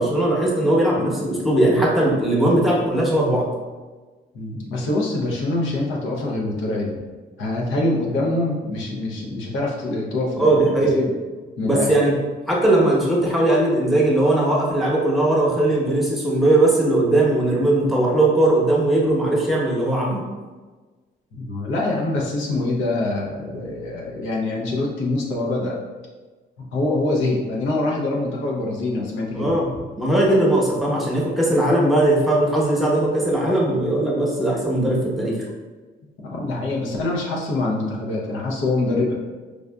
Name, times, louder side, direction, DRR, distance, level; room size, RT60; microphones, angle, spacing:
voice 1, 0.0-3.4 10.4-11.0 11.6-12.1 12.5-20.2 29.3-29.7 30.0-35.3, right 1 dB, ahead, -4 dB, 0.9 m, -19 dB
voice 2, 4.3-7.0 7.4-11.1 11.6-11.9 21.3-25.8 26.7-29.5 36.2-39.2, left 2 dB, 85° left, -3 dB, 0.8 m, -24 dB
4.8 x 2.5 x 2.2 m, 1.3 s
cardioid pair, 90°, 20 cm